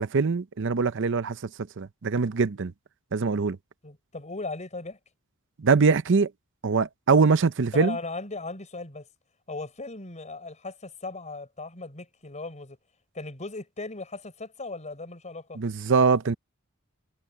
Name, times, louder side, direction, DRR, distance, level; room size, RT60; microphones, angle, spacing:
voice 1, 0.0-1.4 1.8-2.7 3.1-3.6 5.6-6.3 6.6-8.0 15.6-16.4, right 4 dB, 60° right, 0.6 m, -23 dB
voice 2, 3.8-5.0 7.7-9.1 9.5-12.8 13.1-15.6, left 3 dB, 35° left, 4.8 m, -37 dB
head